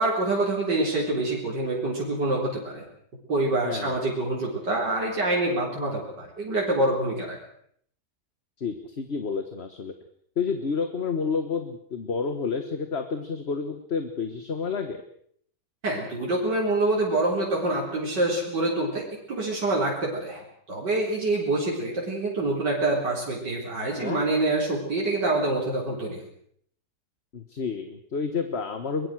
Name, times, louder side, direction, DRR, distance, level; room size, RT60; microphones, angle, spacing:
voice 1, 0.0-2.8 3.3-7.4 15.8-26.2, right 2 dB, 85° right, -3 dB, 4.8 m, -26 dB
voice 2, 3.6-4.0 8.6-9.9 10.4-15.0 23.9-24.2 27.3-29.1, left 5 dB, 40° left, 8 dB, 1.6 m, -30 dB
24.0 x 21.0 x 6.3 m, 0.65 s
omnidirectional pair, 1.8 m